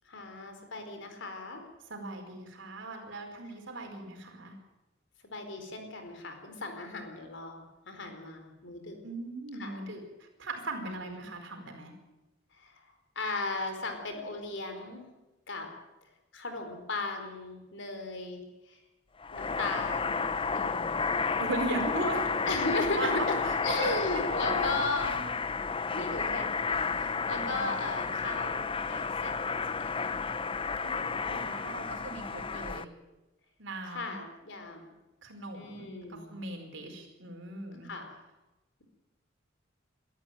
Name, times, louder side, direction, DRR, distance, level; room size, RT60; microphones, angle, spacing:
voice 1, 0.1-1.6 5.2-9.0 9.6-9.8 10.8-11.2 12.5-15.0 15.5-15.7 16.3-18.8 19.3-21.0 22.5-23.1 23.6-25.2 25.9-30.1 31.4-32.7 33.8-34.9 35.5-36.4 37.8-38.1, left 2 dB, 65° left, 5 dB, 4.4 m, -37 dB
voice 2, 1.9-4.5 9.0-11.9 21.4-22.4 22.9-25.2 27.3-27.7 30.8-32.9 33.6-34.2 35.2-37.9, right 2 dB, 65° right, 3 dB, 4.9 m, -38 dB
sound 1, 19.2-32.8, left 5 dB, 25° left, 0.7 m, -32 dB
22.0 x 13.5 x 9.3 m, 1.0 s
head